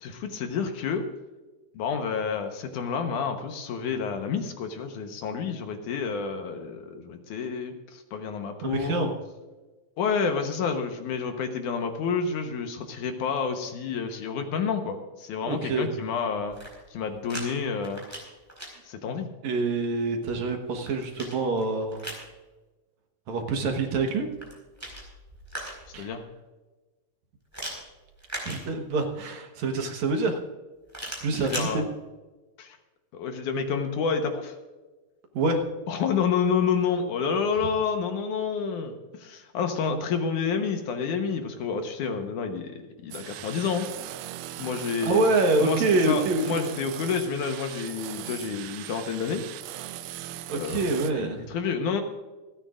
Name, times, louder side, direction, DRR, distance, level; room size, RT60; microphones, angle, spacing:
voice 1, 0.0-1.1 1.7-9.1 10.0-16.6 16.9-18.0 18.8-19.3 25.9-26.2 31.3-31.8 32.6-32.8 33.1-34.6 35.9-43.9 44.6-45.2 45.6-49.4 50.5-50.9 51.1-52.0, left 6 dB, 70° left, 5 dB, 2.4 m, -29 dB
voice 2, 8.6-9.1 15.4-15.9 19.4-22.0 23.3-24.3 25.9-26.1 28.4-30.4 31.2-31.8 35.3-35.6 45.0-46.4 50.5-51.5, right 3 dB, 65° right, 4 dB, 2.3 m, -26 dB
sound 1, 16.4-17.5 17.8-18.7 20.4-22.3 24.3-26.0 27.5-29.1 30.9-31.7, right 1 dB, 5° right, 4.1 m, -39 dB
sound 2, 43.1-51.1, right 14 dB, 85° right, 2.3 m, -39 dB
28.0 x 9.8 x 2.5 m, 1.2 s
omnidirectional pair, 4.0 m